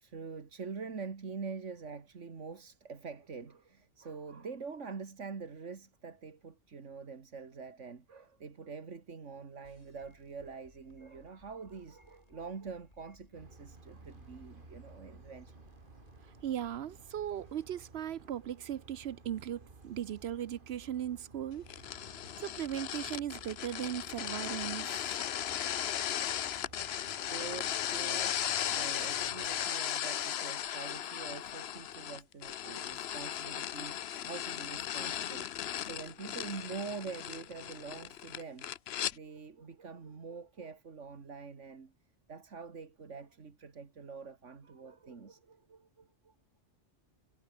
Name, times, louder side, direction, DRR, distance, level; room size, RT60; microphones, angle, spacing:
voice 1, 0.0-15.6 27.3-38.7 39.1-41.9 42.3-46.3, right 5 dB, 80° right, 2.3 m, -45 dB
sound 1, 9.6-18.6, left 2 dB, 30° left, 3.4 m, -64 dB
sound 2, 13.3-29.7, right 3 dB, 45° right, 2.4 m, -56 dB
voice 2, 16.4-22.0 22.4-24.9, right 10 dB, 65° right, 0.8 m, -38 dB
sound 3, 21.7-39.1, left 10 dB, 65° left, 0.9 m, -37 dB
omnidirectional pair, 1.2 m